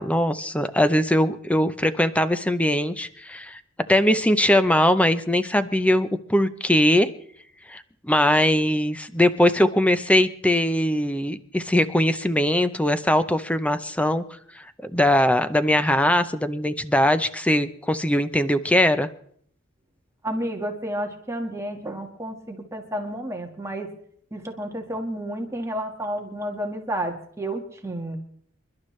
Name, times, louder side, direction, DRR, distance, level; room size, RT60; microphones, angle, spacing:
voice 1, 0.0-3.6 3.9-7.1 7.7-14.2 14.6-14.7 14.9-19.1, left 1 dB, 5° left, 11 dB, 0.6 m, -21 dB
voice 2, 20.2-23.9 24.3-28.2, right 1 dB, 15° right, 2 dB, 1.6 m, -31 dB
27.5 x 11.5 x 3.2 m, 0.63 s
head